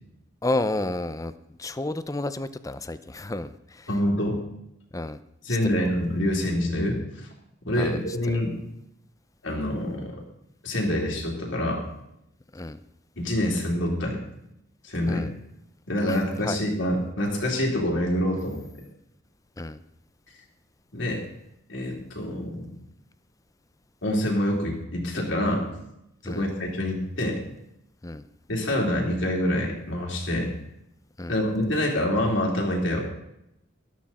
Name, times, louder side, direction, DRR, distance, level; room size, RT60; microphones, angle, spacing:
voice 1, 0.4-1.3 1.6-3.9 4.9-5.2 5.7-5.9 7.8-8.0 12.5-12.8 15.1-15.3 16.1-16.2 16.4-16.6 19.6-19.8 26.2-26.5 28.0-28.2 31.2-31.4, left 2 dB, 15° left, 13 dB, 0.5 m, -31 dB
voice 2, 3.9-4.4 5.4-7.3 7.6-8.6 9.4-10.2 10.6-11.8 13.2-14.2 14.8-15.3 15.9-18.6 20.9-21.2 21.7-22.8 24.0-25.7 26.2-27.4 28.5-30.5 31.3-33.0, left 1 dB, 70° left, -1 dB, 3.3 m, -26 dB
13.5 x 12.5 x 4.3 m, 0.81 s
head